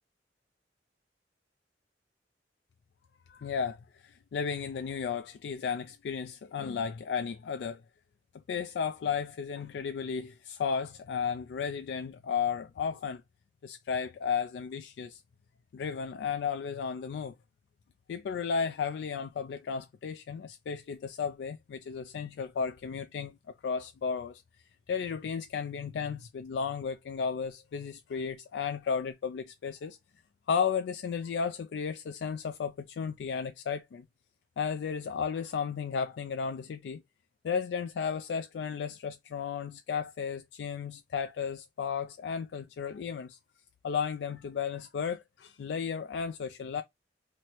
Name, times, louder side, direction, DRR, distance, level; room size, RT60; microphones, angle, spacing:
voice 1, 3.3-7.8 8.5-13.2 13.6-15.2 15.7-17.3 18.1-23.4 23.6-24.4 24.9-30.0 30.5-34.1 34.6-37.0 37.4-43.4 43.8-46.8, left 6 dB, 75° left, 0.3 m, -34 dB
3.0 x 2.1 x 4.1 m
head